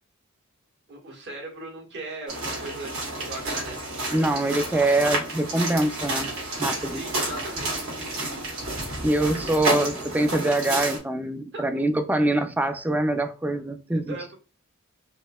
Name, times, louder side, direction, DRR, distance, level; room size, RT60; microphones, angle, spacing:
voice 1, 0.9-3.0 3.3-3.8 6.9-8.5 11.5-11.7 14.1-14.3, right 2 dB, 55° right, 1.5 m, -38 dB
sound 1, 2.3-11.0, right 2 dB, 70° right, 2.2 m, -30 dB
voice 2, 4.1-6.3 6.6-7.0 9.0-14.2, right 1 dB, 5° right, 0.3 m, -24 dB
5.0 x 2.8 x 2.3 m
head